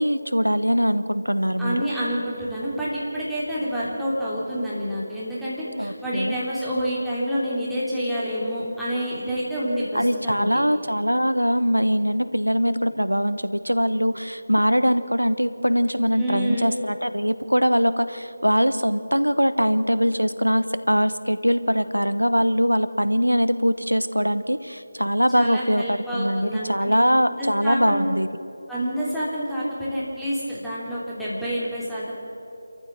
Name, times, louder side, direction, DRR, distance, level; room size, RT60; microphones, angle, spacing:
voice 1, 0.0-1.8 5.8-6.3 9.9-28.3, equal, 90° right, 13 dB, 1.2 m, -22 dB
voice 2, 1.6-10.5 16.1-16.7 25.3-26.9 27.4-28.1 28.7-32.1, equal, ahead, -11 dB, 3.2 m, -28 dB
28.0 x 14.0 x 7.5 m, 2.9 s
figure-of-eight pair, 160°, 0 cm